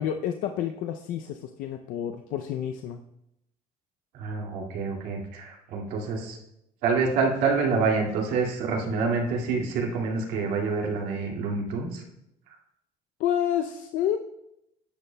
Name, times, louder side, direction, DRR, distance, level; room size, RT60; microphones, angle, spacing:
voice 1, 0.0-3.0 13.2-14.2, left 10 dB, 70° left, 6 dB, 0.5 m, -29 dB
voice 2, 4.1-6.4 6.8-12.0, right 4 dB, 80° right, -1 dB, 2.2 m, -27 dB
12.0 x 10.0 x 2.2 m, 0.83 s
cardioid pair, 165°, 14 cm